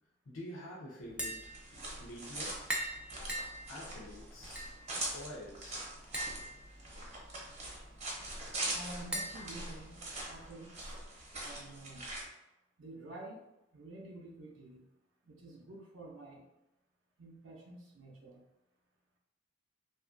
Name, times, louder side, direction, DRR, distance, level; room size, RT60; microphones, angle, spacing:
voice 1, 0.3-2.6 3.1-3.4 3.7-4.8 5.1-5.9, left 1 dB, 85° left, -4 dB, 0.5 m, -48 dB
Tap, 1.0-10.5, right 1 dB, 5° right, 0.4 m, -44 dB
sound 1, 1.4-12.3, right 2 dB, 35° right, 0.7 m, -42 dB
voice 2, 8.7-10.0 10.3-11.0 11.4-12.1 12.8-14.8 15.2-16.4 17.2-18.4, right 2 dB, 75° right, -2 dB, 0.5 m, -49 dB
2.9 x 2.4 x 2.4 m, 0.92 s
head